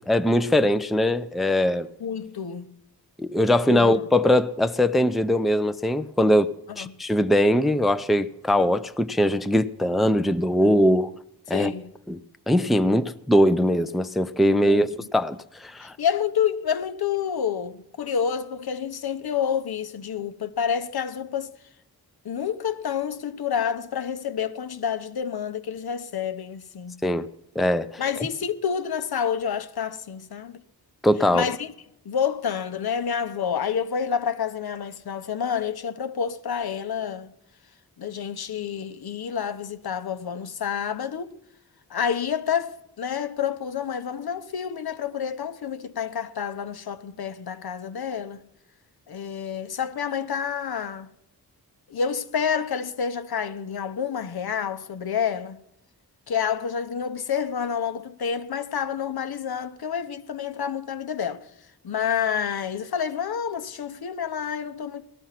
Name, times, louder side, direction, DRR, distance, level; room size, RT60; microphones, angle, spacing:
voice 1, 0.1-1.9 3.2-11.1 11.5-11.7 12.1-12.2 12.5-15.9 27.0-27.3 27.6-28.0 31.0-31.5, left 1 dB, ahead, 0.5 m, -21 dB
voice 2, 2.0-2.7 3.7-3.9 6.7-7.0 11.5-11.9 14.6-15.1 15.8-21.6 22.2-27.0 28.0-30.6 31.3-31.7 32.0-37.3 38.0-41.3 41.9-48.4 49.1-51.1 51.9-55.6 56.3-61.5 61.8-65.0, left 7 dB, 75° left, 1.0 m, -28 dB
18.5 x 12.5 x 5.8 m
wide cardioid pair, 80°, 38 cm